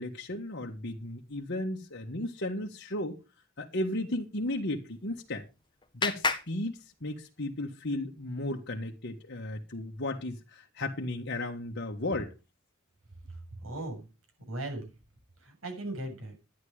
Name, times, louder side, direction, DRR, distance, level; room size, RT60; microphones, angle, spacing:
voice 1, 0.0-3.2 3.6-5.4 5.9-12.3, left 1 dB, 55° left, 1.6 m, -35 dB
Clapping, 4.9-7.5, left 4 dB, 20° left, 1.4 m, -35 dB
voice 2, 13.3-14.1 14.5-14.9 15.4-16.3, right 1 dB, 75° right, 7.2 m, -38 dB
12.5 x 10.0 x 4.9 m
head